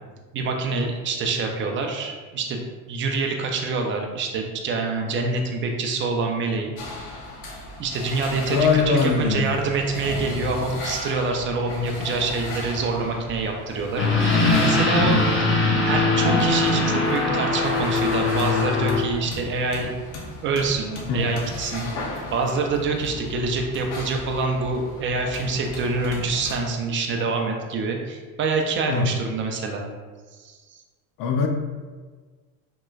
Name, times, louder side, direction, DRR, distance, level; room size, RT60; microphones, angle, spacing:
voice 1, 0.3-6.7 7.8-15.2 15.5-19.9 20.4-21.9 22.3-29.8 30.4-30.5, right 3 dB, 30° right, 2 dB, 0.4 m, -26 dB
sound 1, 6.8-26.5, left 2 dB, 80° left, 0.8 m, -36 dB
voice 2, 8.5-9.4 21.1-21.2 28.9-29.1 31.2-31.5, left 5 dB, 50° left, 3 dB, 0.5 m, -21 dB
sound 2, 14.0-19.0, left 2 dB, 30° left, 0.8 m, -21 dB
3.0 x 2.9 x 2.3 m, 1.4 s
supercardioid pair, 95°, 43 cm